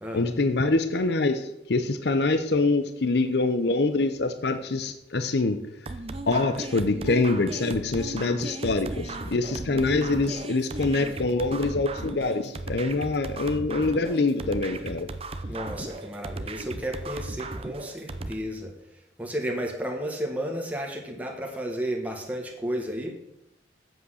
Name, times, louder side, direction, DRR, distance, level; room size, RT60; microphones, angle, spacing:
voice 1, 0.1-5.6 6.3-15.1, left 3 dB, 60° left, 9 dB, 0.7 m, -25 dB
sound 1, 5.9-18.3, right 2 dB, 35° right, 0.6 m, -36 dB
voice 2, 15.5-23.1, equal, 10° right, 0 dB, 1.5 m, -33 dB
8.2 x 7.7 x 6.4 m, 0.83 s
head